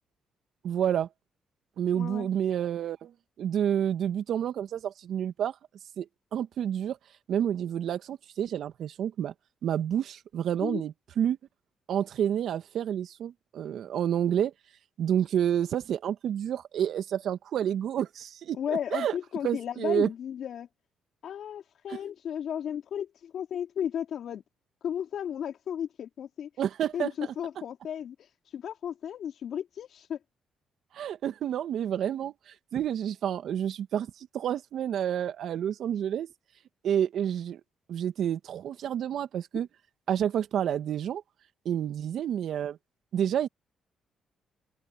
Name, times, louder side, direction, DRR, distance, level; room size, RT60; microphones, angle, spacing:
voice 1, 0.6-1.1 1.8-3.1 3.4-5.6 6.0-6.1 6.3-7.0 7.3-9.3 9.6-11.4 11.9-14.5 15.0-18.6 18.9-19.1 19.4-20.1 26.6-27.1 30.9-36.3 36.8-37.6 37.9-39.7 40.1-41.2 41.7-42.8 43.1-43.5, right 9 dB, 70° right, 2.1 m, -29 dB
voice 2, 1.9-2.3 10.6-10.8 18.5-20.7 21.2-24.4 24.8-26.5 26.9-28.2 28.5-30.2, left 9 dB, 65° left, 3.8 m, -34 dB
supercardioid pair, 60°, 0 cm